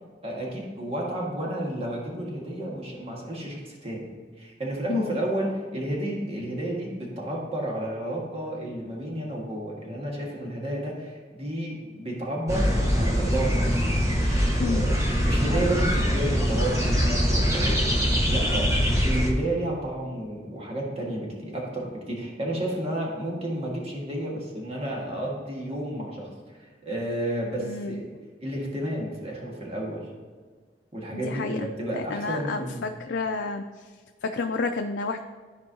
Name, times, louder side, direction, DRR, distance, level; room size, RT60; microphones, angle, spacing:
voice 1, 0.2-4.0 4.4-13.7 14.1-17.8 18.3-28.0 28.4-30.1 30.9-32.9, right 1 dB, 35° right, -3 dB, 1.7 m, -31 dB
voice 2, 4.9-5.2 14.6-14.9 27.6-28.0 31.1-33.6 34.2-35.2, left 4 dB, 80° left, 4 dB, 0.4 m, -30 dB
sound 1, 12.5-19.3, equal, 20° right, 1.1 m, -23 dB
13.5 x 4.7 x 2.8 m, 1.5 s
head